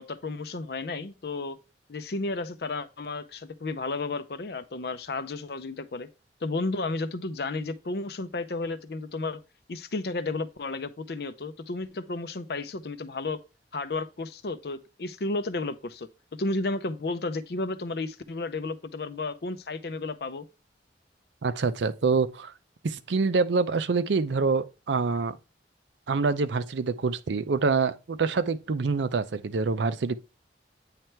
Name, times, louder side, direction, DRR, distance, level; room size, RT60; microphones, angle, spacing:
voice 1, 0.0-1.6 1.9-6.1 6.4-9.4 9.7-13.4 13.7-20.5, left 3 dB, 60° left, 0.6 m, -32 dB
voice 2, 21.4-22.5 22.8-25.4 26.1-30.2, right 4 dB, 85° right, 0.5 m, -26 dB
8.9 x 3.3 x 4.4 m
head